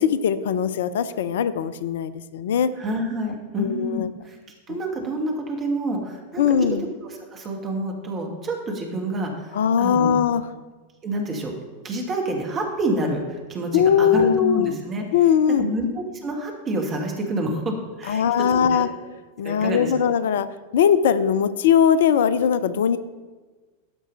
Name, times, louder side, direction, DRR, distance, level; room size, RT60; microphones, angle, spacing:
voice 1, 0.0-2.7 3.6-4.1 4.7-4.8 6.4-6.9 9.5-10.4 13.7-14.7 15.1-15.7 18.1-18.9 19.4-20.5 20.7-23.0, left 8 dB, 60° left, 14 dB, 0.4 m, -20 dB
voice 2, 2.8-4.4 4.7-6.8 7.0-10.2 11.0-11.5 11.8-15.0 15.6-15.9 16.2-18.2 18.5-18.9 19.4-20.1, right 1 dB, 25° right, 2 dB, 1.6 m, -28 dB
12.0 x 4.8 x 5.3 m, 1.3 s
figure-of-eight pair, 90°, 0 cm